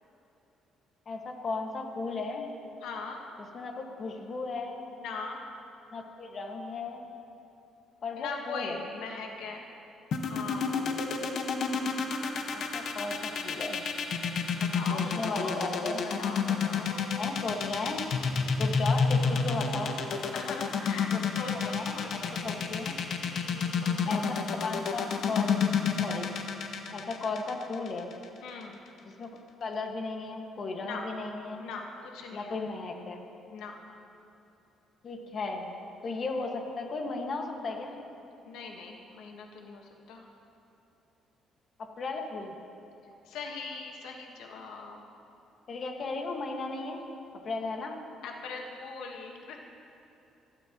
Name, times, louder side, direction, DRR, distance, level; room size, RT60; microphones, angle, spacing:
voice 1, 1.0-2.5 3.5-4.8 5.9-7.1 8.0-8.8 12.5-13.9 14.9-16.0 17.1-18.0 18.6-20.0 21.1-23.0 24.1-26.3 26.9-28.1 29.2-29.3 29.6-31.7 32.3-33.2 35.0-35.7 36.0-37.9 42.0-42.5 45.7-47.0 47.4-48.0, left 3 dB, 40° left, 1 dB, 1.7 m, -35 dB
voice 2, 2.8-3.2 4.9-5.4 8.2-9.6 10.2-10.9 14.6-15.9 16.2-17.3 18.8-20.0 20.3-22.6 23.3-24.2 28.4-28.8 30.8-31.0 31.6-32.6 33.5-33.7 38.5-40.2 43.2-45.0 48.2-49.6, left 4 dB, 90° left, 1 dB, 1.5 m, -41 dB
sound 1, 10.1-28.2, left 5 dB, 60° left, 1.3 m, -29 dB
28.0 x 12.5 x 3.1 m, 3.0 s
cardioid pair, 135°, 0 cm